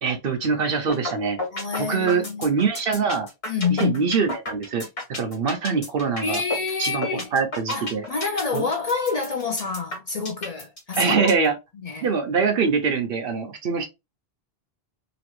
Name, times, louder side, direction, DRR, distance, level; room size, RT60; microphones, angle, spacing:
voice 1, 0.0-1.4 1.9-3.3 3.7-4.9 5.2-6.4 6.8-7.1 7.3-8.0 8.5-8.7 11.0-11.5 12.0-13.9, right 5 dB, 65° right, 0.9 m, -23 dB
sound 1, 0.9-1.1 1.4-11.5, left 2 dB, 75° left, 1.7 m, -31 dB
voice 2, 1.5-2.5 3.5-4.1 6.2-7.3 7.7-11.3 11.8-12.1, left 5 dB, 45° left, 0.6 m, -27 dB
3.0 x 2.5 x 2.9 m
omnidirectional pair, 1.0 m